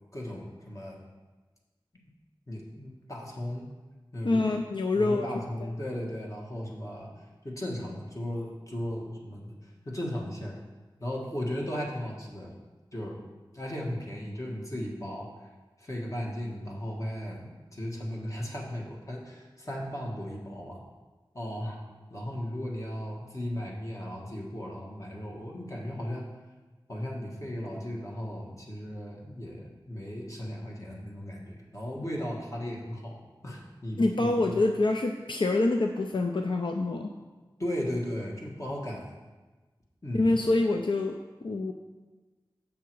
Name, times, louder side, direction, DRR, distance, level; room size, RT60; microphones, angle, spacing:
voice 1, 0.1-1.0 2.5-3.7 4.1-4.5 4.9-7.1 7.4-10.6 11.0-12.5 12.9-13.2 13.5-15.5 15.8-20.8 21.3-21.8 22.1-26.3 26.9-34.6 37.6-39.1 40.0-40.4, equal, 40° left, -2 dB, 1.6 m, -36 dB
voice 2, 4.2-5.3 34.0-37.1 40.1-41.2 41.4-41.7, left 2 dB, 75° left, 3 dB, 0.5 m, -26 dB
7.4 x 5.9 x 4.6 m, 1.3 s
wide cardioid pair, 60°, 8 cm